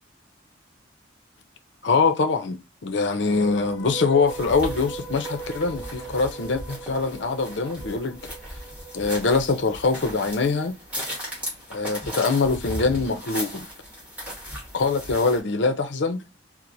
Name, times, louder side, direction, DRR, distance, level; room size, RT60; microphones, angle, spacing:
voice 1, 1.8-8.2 8.9-10.7 11.7-13.7 14.7-16.2, left 4 dB, 75° left, 0.6 m, -23 dB
sound 1, 3.3-10.5, right 5 dB, 15° left, 0.8 m, -39 dB
sound 2, 4.3-15.4, equal, 10° right, 1.3 m, -37 dB
4.4 x 2.0 x 2.6 m
head